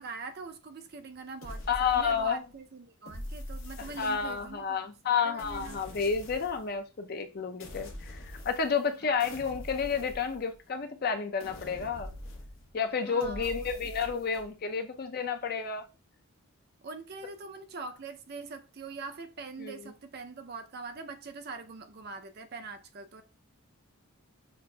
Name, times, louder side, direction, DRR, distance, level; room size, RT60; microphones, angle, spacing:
voice 1, 0.0-5.8 9.0-9.2 13.0-13.7 16.8-23.2, right 4 dB, 45° right, 0.5 m, -43 dB
sound 1, 1.4-2.5 3.0-4.7 5.4-6.7 7.6-8.9 9.2-10.8 11.4-12.8 13.2-14.5, left 1 dB, 65° left, 0.9 m, -44 dB
voice 2, 1.7-2.4 4.0-12.1 12.7-15.8 19.6-19.9, left 6 dB, 45° left, 0.5 m, -31 dB
6.5 x 2.5 x 2.2 m
head